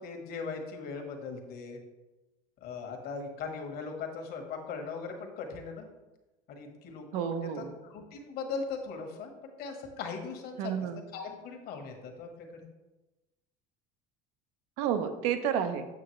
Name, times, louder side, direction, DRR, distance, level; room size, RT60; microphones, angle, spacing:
voice 1, 0.0-1.8 2.6-5.9 6.5-10.7 11.1-12.7, left 4 dB, 55° left, 3 dB, 1.3 m, -39 dB
voice 2, 7.1-7.7 10.6-11.0 14.8-15.9, right 8 dB, 80° right, 8 dB, 0.8 m, -30 dB
8.2 x 6.0 x 3.2 m, 1.1 s
cardioid pair, 130°, 19 cm